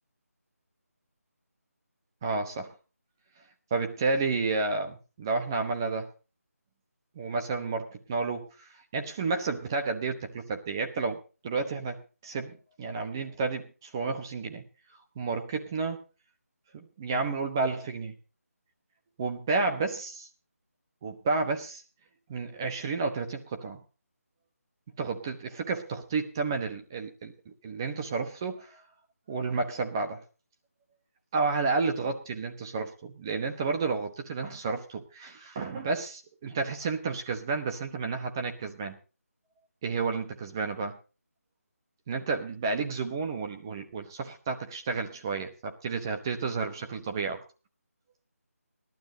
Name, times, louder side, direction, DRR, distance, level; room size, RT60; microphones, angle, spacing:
voice 1, 2.2-2.7 3.7-6.1 7.1-8.5 8.9-12.0 12.2-14.6 15.2-16.0 17.0-18.1 19.2-20.3 21.0-21.8 22.3-23.8 25.0-28.8 29.3-30.2 31.3-39.0 39.8-41.0 42.1-47.4, right 4 dB, 15° right, 5 dB, 1.0 m, -31 dB
17.0 x 12.0 x 3.8 m, 0.33 s
figure-of-eight pair, 175°, 8 cm